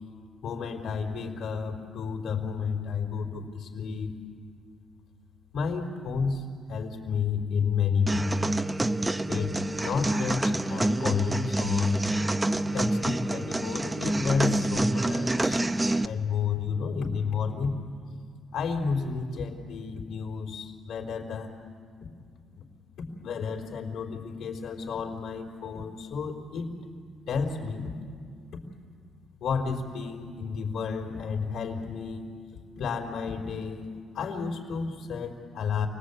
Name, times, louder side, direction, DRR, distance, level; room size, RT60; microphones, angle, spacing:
voice 1, 0.4-4.1 5.5-8.3 9.3-12.1 12.7-15.6 16.0-17.8 18.5-21.5 22.5-22.6 23.2-26.7 27.3-27.9 29.4-32.3 32.8-35.9, left 5 dB, 85° left, -2 dB, 3.9 m, -31 dB
sound 1, 8.1-16.1, right 1 dB, 15° right, 0.7 m, -27 dB
28.5 x 20.0 x 8.4 m, 2.2 s
cardioid pair, 90°, 0 cm